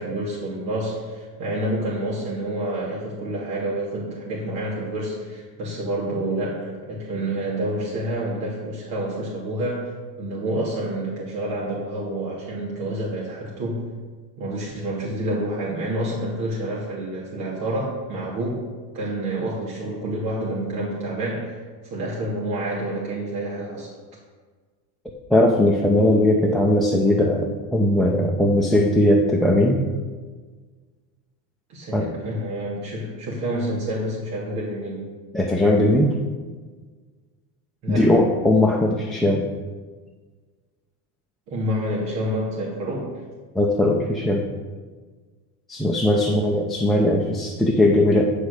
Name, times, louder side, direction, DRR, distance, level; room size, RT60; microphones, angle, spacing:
voice 1, 0.0-13.9 14.4-18.6 18.9-23.9 31.7-35.1 37.8-38.1 41.5-43.1 46.1-46.5, right 1 dB, 55° right, -5 dB, 2.8 m, -28 dB
voice 2, 25.3-29.8 31.9-32.1 35.3-36.2 37.9-39.5 43.5-44.5 45.7-48.2, left 1 dB, ahead, 0 dB, 0.8 m, -19 dB
14.5 x 4.9 x 6.7 m, 1.5 s
supercardioid pair, 130°, 46 cm